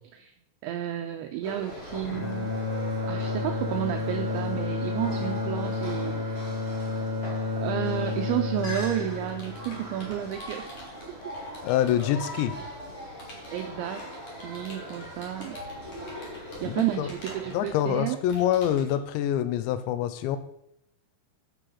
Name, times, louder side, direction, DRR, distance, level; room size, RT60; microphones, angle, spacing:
voice 1, 0.6-2.5 3.1-6.5 7.6-10.8 11.3-11.4 13.5-14.0 14.4-15.6 16.6-18.2, right 12 dB, 90° right, 6 dB, 2.6 m, -31 dB
sound 1, 1.4-17.6, equal, 25° left, 1.3 m, -40 dB
Bowed string instrument, 2.0-10.3, left 4 dB, 60° left, 1.8 m, -31 dB
Computer keyboard, 9.3-12.6 13.2-19.0, equal, 40° left, 2.5 m, -48 dB
voice 2, 11.6-12.6 16.6-17.1 17.5-20.4, left 10 dB, 80° left, 11 dB, 2.7 m, -26 dB
9.1 x 7.4 x 5.5 m, 0.76 s
omnidirectional pair, 5.9 m